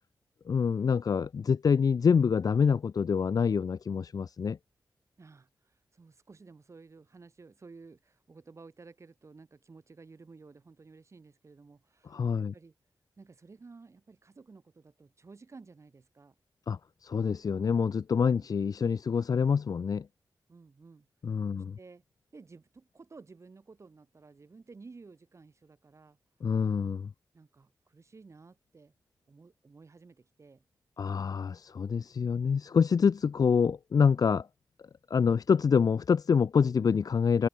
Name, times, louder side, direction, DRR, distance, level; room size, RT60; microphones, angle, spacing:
voice 1, 0.5-4.6 12.1-12.5 16.7-20.1 21.2-21.8 26.4-27.1 31.0-34.5 35.1-37.5, left 6 dB, 55° left, 0.5 m, -26 dB
voice 2, 5.2-12.7 13.2-16.3 18.2-18.5 20.5-21.1 21.5-22.0 22.3-26.2 27.3-28.9 29.3-30.6, right 4 dB, 40° right, 4.5 m, -54 dB
wide cardioid pair, 150°, 8 cm